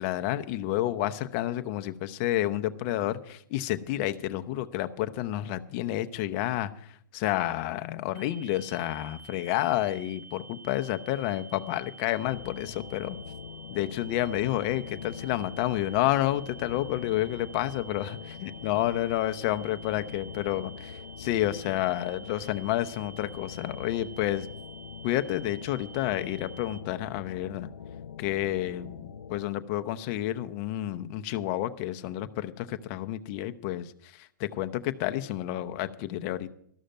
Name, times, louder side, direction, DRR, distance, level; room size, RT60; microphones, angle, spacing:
voice 1, 0.0-6.7 7.1-13.2 13.7-24.5 25.0-27.7 28.2-33.9 34.2-36.5, left 14 dB, 40° left, 10 dB, 0.8 m, -30 dB
sound 1, 8.1-26.8, right 3 dB, 60° right, 1.1 m, -49 dB
sound 2, 12.2-29.4, left 7 dB, 90° left, 0.5 m, -44 dB
13.0 x 6.4 x 9.0 m, 0.66 s
hypercardioid pair, 130°, 11 cm